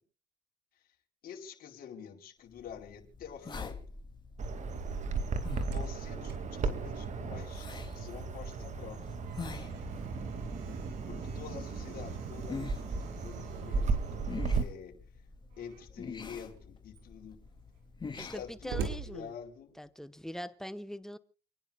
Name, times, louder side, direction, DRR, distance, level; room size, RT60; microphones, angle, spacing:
voice 1, 1.2-3.8 5.6-7.7 7.9-9.1 11.1-15.2 15.6-17.4 18.2-18.8 19.0-19.8, left 8 dB, 60° left, 4.7 m, -47 dB
sound 1, 2.6-19.2, left 4 dB, 25° left, 2.8 m, -47 dB
Bird vocalization bird call bird song, 4.4-14.6, right 4 dB, 45° right, 2.4 m, -35 dB
Slam, 5.5-8.1 8.4-8.5 8.9-14.6 15.5-16.0 16.6-16.7 16.9-20.0, right 5 dB, 85° right, 5.4 m, -46 dB
voice 2, 18.2-19.3 19.8-21.2, equal, 5° left, 1.2 m, -42 dB
29.5 x 10.5 x 2.4 m
cardioid pair, 110°, 17 cm